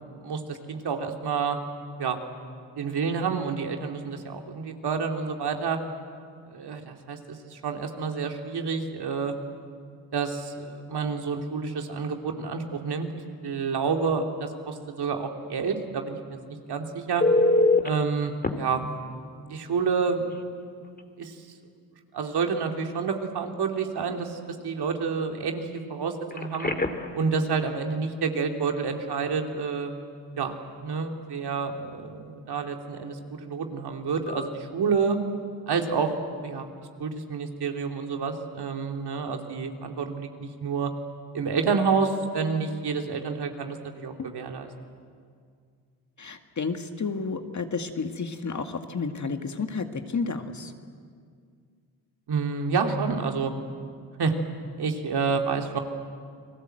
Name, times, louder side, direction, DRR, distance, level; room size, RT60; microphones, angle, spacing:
voice 1, 0.2-1.6 2.0-2.2 2.8-5.8 6.5-9.3 10.1-13.1 13.4-16.4 16.7-17.2 17.8-18.8 19.4-20.3 21.2-21.4 22.1-24.4 24.6-26.7 27.1-29.9 30.4-35.2 35.7-36.1 36.4-36.7 37.0-40.9 41.3-44.7 52.3-53.5 54.2-54.3 54.8-55.8, right 5 dB, 55° right, 3 dB, 3.0 m, -29 dB
Telephone, 17.2-17.9 18.4-18.5 20.3-20.4 20.8-21.0 26.3-27.2 34.3-34.5, left 2 dB, 20° left, 2.5 m, -23 dB
voice 2, 46.2-50.7, left 4 dB, 40° left, 6 dB, 2.1 m, -31 dB
29.5 x 20.0 x 7.9 m, 2.1 s
supercardioid pair, 60°, 46 cm